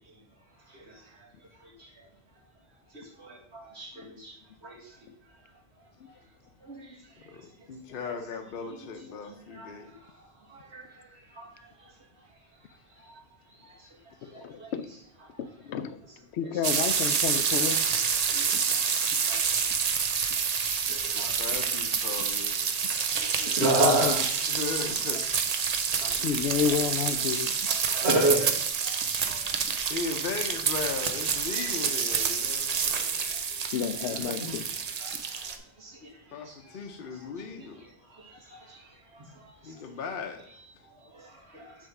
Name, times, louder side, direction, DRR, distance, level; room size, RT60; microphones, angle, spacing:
voice 1, 2.9-4.3 4.6-4.8 6.6-7.0 8.0-8.1 9.6-9.7 10.5-10.8 11.3-11.5 13.1-13.2 13.6-13.7 14.3-14.7 18.3-18.8 19.2-19.4 20.9-21.3 23.2-24.6 26.0-26.4 27.4-28.5 28.8-29.4 32.5-33.4 34.5-34.6 35.0-36.1 36.5-36.8 38.1-38.8 39.1-39.2 41.1-41.8, right 1 dB, 85° right, -2 dB, 1.9 m, -32 dB
voice 2, 7.2-9.9 21.1-22.7 24.5-25.2 26.1-26.3 29.9-33.3 36.3-37.9 39.7-40.4, left 5 dB, 60° left, 3 dB, 0.8 m, -37 dB
voice 3, 14.3-14.9 15.4-16.0 16.3-17.8 18.5-18.6 23.5-24.2 26.1-27.5 33.7-34.7, left 7 dB, 90° left, 12 dB, 0.9 m, -30 dB
sound 1, 16.6-35.6, right 6 dB, 50° right, 0.5 m, -28 dB
6.4 x 3.4 x 5.8 m, 0.67 s
omnidirectional pair, 1.1 m